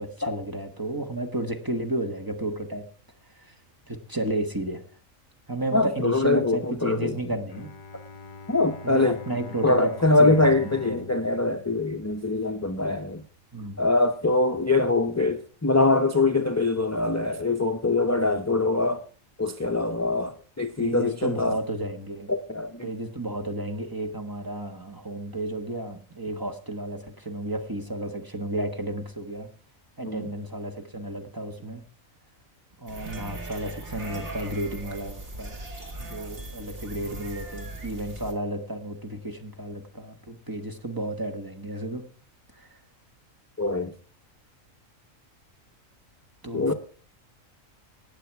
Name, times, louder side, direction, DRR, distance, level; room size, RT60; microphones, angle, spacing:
voice 1, 0.0-2.8 3.3-3.6 3.9-4.8 5.5-7.7 8.8-9.9 10.2-10.7 13.5-13.8 20.8-22.3 22.8-29.5 30.0-31.8 32.8-35.6 36.0-42.0 42.5-42.8 46.4-46.7, right 1 dB, 15° right, 1.3 m, -32 dB
voice 2, 5.7-7.1 8.5-9.2 9.6-13.2 13.8-19.0 19.4-21.5 22.3-22.9 30.0-30.3 43.6-43.9 46.5-46.7, left 2 dB, 25° left, 0.4 m, -23 dB
Bowed string instrument, 7.5-12.8, left 3 dB, 45° left, 0.8 m, -44 dB
sound 1, 32.9-38.3, right 2 dB, 55° right, 2.7 m, -39 dB
18.5 x 6.9 x 4.6 m
omnidirectional pair, 1.4 m